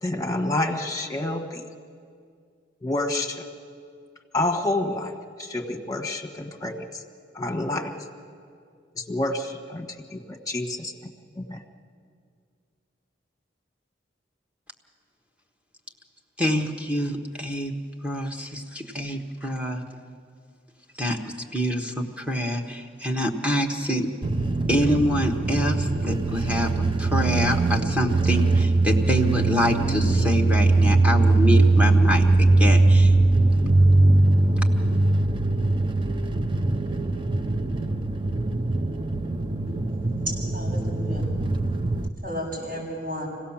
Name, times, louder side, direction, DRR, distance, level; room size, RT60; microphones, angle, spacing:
voice 1, 0.0-1.6 2.8-3.4 4.3-5.1 5.4-7.0 7.3-8.0 8.9-11.6, left 2 dB, 20° left, 2 dB, 1.5 m, -28 dB
voice 2, 16.4-17.7 18.0-19.8 21.0-24.1 24.7-33.1, equal, 5° right, 1 dB, 1.3 m, -26 dB
sound 1, 24.2-42.1, right 2 dB, 25° right, 0.6 m, -21 dB
voice 3, 40.3-41.2 42.2-43.3, equal, 50° right, -3 dB, 6.8 m, -33 dB
25.5 x 17.0 x 7.3 m, 2.2 s
head